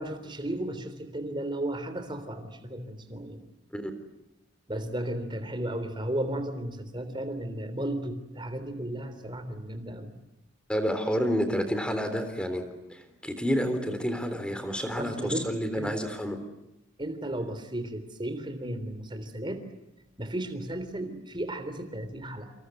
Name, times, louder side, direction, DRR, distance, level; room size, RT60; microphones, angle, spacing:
voice 1, 0.0-3.4 4.7-10.1 15.0-15.5 15.7-15.9 17.0-19.7 20.2-22.5, right 1 dB, 25° right, 9 dB, 3.6 m, -34 dB
voice 2, 10.7-12.6 12.9-16.4, equal, 5° left, 8 dB, 3.6 m, -29 dB
28.0 x 27.0 x 7.9 m, 0.91 s
head